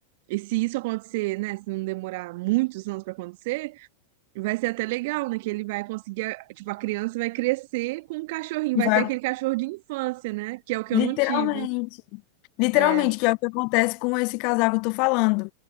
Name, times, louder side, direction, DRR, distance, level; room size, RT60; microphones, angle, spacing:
voice 1, 0.3-3.9 4.3-11.7 12.7-13.1, right 22 dB, 50° right, 1.7 m, -29 dB
voice 2, 8.8-9.1 10.9-12.2 12.6-15.5, left 32 dB, 45° left, 0.5 m, -23 dB
figure-of-eight pair, 90°, 0 cm